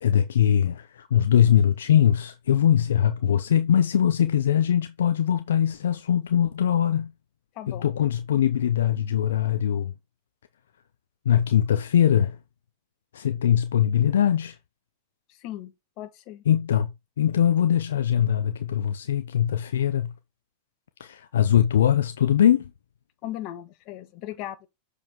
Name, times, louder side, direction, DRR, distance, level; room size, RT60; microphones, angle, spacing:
voice 1, 0.0-7.1 7.7-9.9 11.3-12.4 13.1-14.6 16.5-16.9 17.2-20.1 21.0-22.7, left 9 dB, 80° left, 0.7 m, -22 dB
voice 2, 7.5-7.9 15.3-16.4 23.2-24.7, left 13 dB, 50° left, 1.5 m, -37 dB
7.4 x 5.0 x 3.6 m
hypercardioid pair, 100°, 0 cm